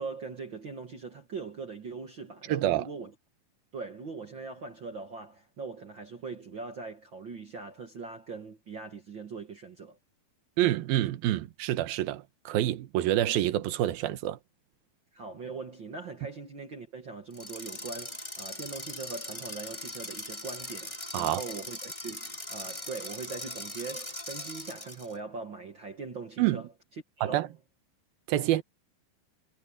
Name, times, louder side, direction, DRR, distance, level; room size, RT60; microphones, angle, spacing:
voice 1, 0.0-3.1 3.7-10.0 15.1-26.7 27.2-27.5, right 4 dB, 50° right, 1.4 m, -41 dB
voice 2, 2.5-2.9 10.6-14.4 21.1-21.4 26.4-26.6 27.2-27.5 28.3-28.6, right 14 dB, 75° right, 3.0 m, -27 dB
sound 1, 17.3-25.1, left 1 dB, 5° left, 6.1 m, -40 dB
omnidirectional pair, 4.4 m